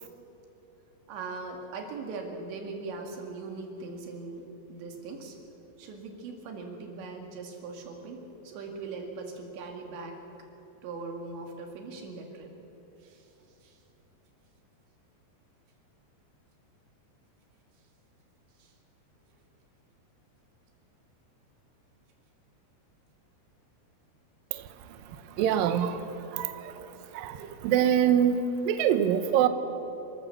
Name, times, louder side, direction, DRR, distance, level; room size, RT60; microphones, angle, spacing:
voice 1, 1.1-5.4 5.8-10.2 10.8-12.5 13.0-13.3 13.6-13.8 18.6-18.7, right 3 dB, 90° right, 2 dB, 4.4 m, -40 dB
voice 2, 25.4-25.9 26.3-26.5 27.1-27.4 27.6-29.5, right 9 dB, 70° right, 9 dB, 2.3 m, -24 dB
29.0 x 13.5 x 7.0 m, 3.0 s
omnidirectional pair, 5.0 m